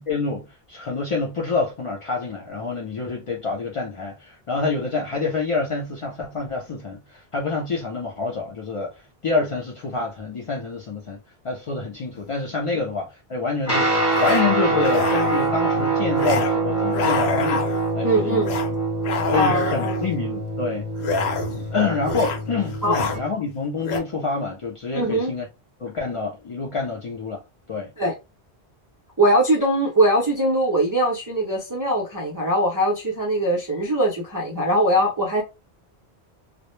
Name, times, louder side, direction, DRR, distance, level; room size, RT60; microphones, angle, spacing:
voice 1, 0.1-8.9 9.2-11.2 11.4-17.7 17.9-18.5 19.3-20.9 21.7-25.5 25.8-27.4 27.7-27.9, left 4 dB, 55° left, 0.3 m, -27 dB
sound 1, 12.2-12.3 14.1-14.4 14.8-15.5 16.2-16.5 16.8-17.9 18.4-18.7 19.0-20.0 21.0-21.7 22.0-22.4 22.7-23.2 23.8-24.0, left 4 dB, 75° left, 0.8 m, -27 dB
Guitar, 13.6-23.3, right 2 dB, 15° left, 1.0 m, -24 dB
voice 2, 18.0-18.5 19.3-20.1 22.8-23.0 24.9-25.3 28.0-28.1 29.2-35.4, right 1 dB, 35° right, 0.3 m, -21 dB
2.0 x 2.0 x 3.0 m
omnidirectional pair, 1.1 m